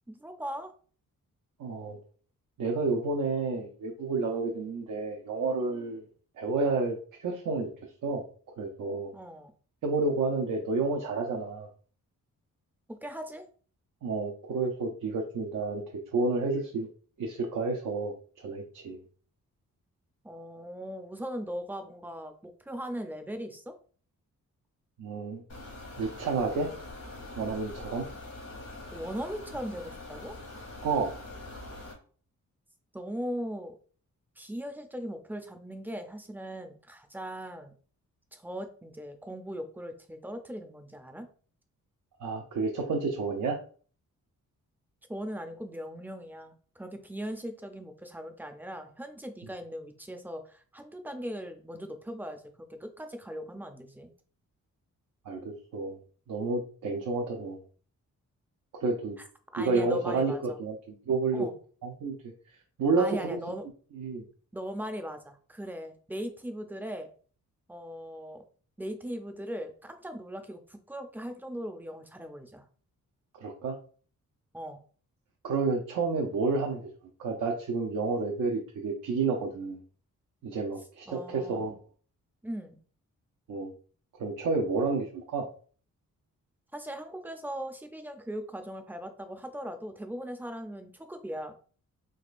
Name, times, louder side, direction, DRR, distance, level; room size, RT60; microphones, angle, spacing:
voice 1, 0.1-0.7 9.1-9.5 12.9-13.4 20.2-23.7 28.9-30.3 32.9-33.8 34.4-37.7 38.3-41.3 45.1-52.4 52.7-54.1 59.2-59.3 59.5-60.6 61.3-61.5 63.0-63.6 64.5-67.1 67.7-68.4 68.8-72.6 74.5-74.8 81.1-81.7 82.4-82.8 86.7-91.5, equal, 5° right, 6 dB, 0.5 m, -39 dB
voice 2, 1.6-2.0 2.6-6.0 6.4-7.0 7.2-7.7 8.0-8.2 8.6-9.1 9.8-11.7 14.0-15.8 16.1-16.9 17.2-18.1 18.4-19.0 25.0-25.4 26.0-26.7 27.4-28.1 30.8-31.1 42.2-43.6 55.3-56.0 56.3-57.6 58.8-59.2 59.6-61.5 61.8-62.3 62.8-63.4 63.9-64.2 73.4-73.8 75.4-76.8 77.2-79.8 80.4-81.8 83.5-83.7 84.2-85.5, right 4 dB, 75° right, 0 dB, 0.7 m, -30 dB
sound 1, 25.5-31.9, left 2 dB, 90° left, 1.4 m, -44 dB
3.5 x 3.1 x 2.4 m, 0.43 s
cardioid pair, 105°, 31 cm